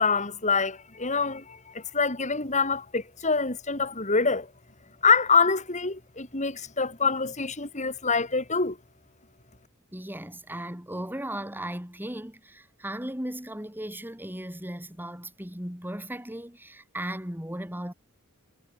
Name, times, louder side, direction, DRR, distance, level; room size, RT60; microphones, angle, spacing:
voice 1, 0.0-4.5 5.0-8.8, left 4 dB, 35° left, 4.0 m, -25 dB
voice 2, 9.9-17.9, right 1 dB, 10° right, 4.6 m, -36 dB
head